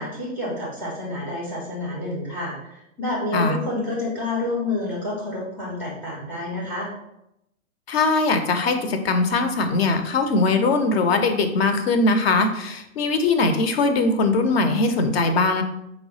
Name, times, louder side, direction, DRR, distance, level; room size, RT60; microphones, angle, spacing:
voice 1, 0.0-6.9, left 2 dB, 5° right, -6 dB, 0.3 m, -29 dB
voice 2, 7.9-15.6, left 3 dB, 50° left, 7 dB, 0.5 m, -21 dB
4.5 x 2.1 x 3.9 m, 0.86 s
figure-of-eight pair, 100°, 40 cm